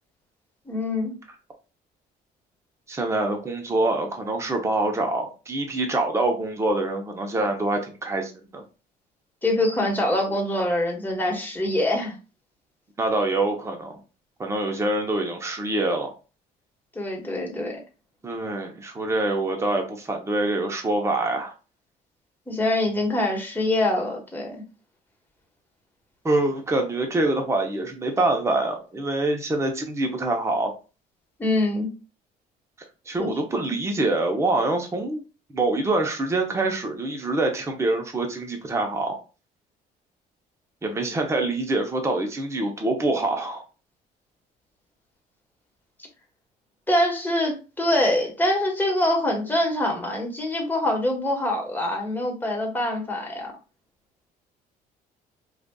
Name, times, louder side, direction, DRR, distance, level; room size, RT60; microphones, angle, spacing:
voice 1, 0.7-1.1 9.4-12.2 16.9-17.8 22.5-24.6 31.4-31.9 33.2-33.3 46.9-53.5, left 1 dB, 10° left, 0 dB, 1.3 m, -24 dB
voice 2, 2.9-8.6 13.0-14.0 14.4-16.1 18.2-21.5 26.2-30.7 33.1-35.2 35.5-39.2 40.8-43.6, right 2 dB, 15° right, 3 dB, 0.7 m, -25 dB
5.0 x 2.5 x 2.3 m, 0.32 s
cardioid pair, 110°, 17 cm